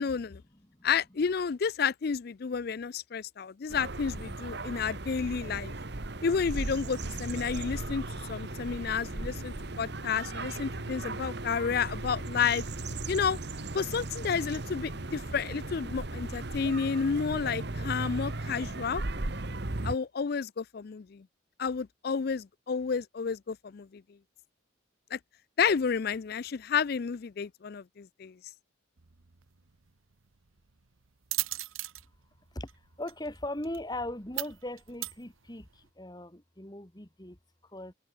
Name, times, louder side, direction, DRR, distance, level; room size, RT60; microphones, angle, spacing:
voice 1, 0.0-0.4 0.8-5.7 6.2-12.6 13.1-13.4 13.7-19.0 19.8-21.2 21.6-24.0 25.1-25.2 25.6-28.3, left 6 dB, 50° left, 0.4 m, -31 dB
voice 2, 0.5-0.9 32.5-32.7 33.0-37.4 37.6-37.9, left 1 dB, 20° left, 2.2 m, -39 dB
sound 1, 3.7-20.0, right 2 dB, 55° right, 1.4 m, -37 dB
sound 2, 6.5-19.5, equal, 90° left, 6.6 m, -58 dB
sound 3, 29.0-35.9, right 18 dB, 85° right, 1.1 m, -40 dB
head